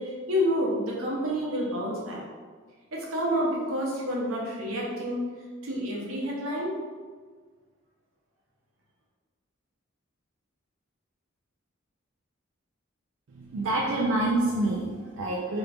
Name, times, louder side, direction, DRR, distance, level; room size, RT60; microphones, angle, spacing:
voice 1, 0.0-2.2 2.9-5.2 5.6-6.7, equal, 85° right, -3 dB, 0.9 m, -29 dB
voice 2, 13.3-15.6, right 2 dB, 65° right, -4 dB, 0.4 m, -27 dB
3.0 x 2.6 x 3.3 m, 1.5 s
head